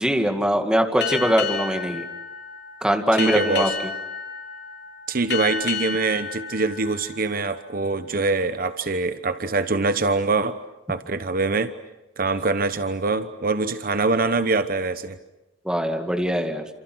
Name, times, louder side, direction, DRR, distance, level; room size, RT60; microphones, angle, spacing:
voice 1, 0.0-2.1 2.8-3.7 15.6-16.7, equal, 5° right, 4 dB, 2.2 m, -22 dB
Boat Water vehicle, 1.0-8.1, left 6 dB, 70° left, 3.6 m, -32 dB
voice 2, 3.2-3.7 5.1-10.6 10.9-11.7 12.2-15.2, right 3 dB, 50° right, 11 dB, 1.0 m, -24 dB
28.5 x 27.5 x 6.3 m, 1.0 s
head